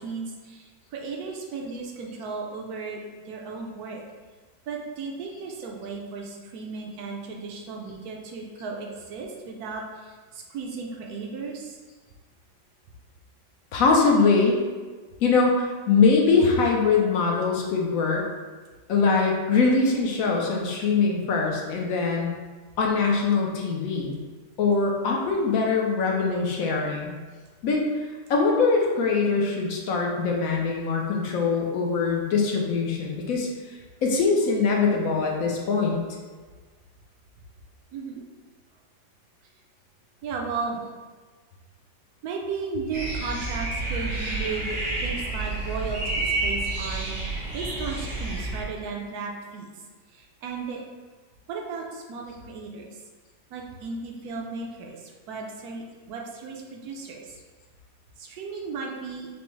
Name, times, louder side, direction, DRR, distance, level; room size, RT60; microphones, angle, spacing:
voice 1, 0.0-4.0 4.7-11.8 37.9-38.2 40.2-40.8 42.2-49.8 50.1-50.8 51.5-52.9 53.5-57.4 58.2-59.3, right 4 dB, 70° right, 0 dB, 1.0 m, -35 dB
voice 2, 13.7-14.6 15.2-18.2 18.9-22.3 22.8-24.2 24.6-27.1 27.6-27.8 28.3-36.0, left 4 dB, 65° left, -1 dB, 0.9 m, -22 dB
sound 1, 42.9-48.6, right 2 dB, 85° right, 1.8 m, -29 dB
5.9 x 2.0 x 3.1 m, 1.4 s
omnidirectional pair, 1.9 m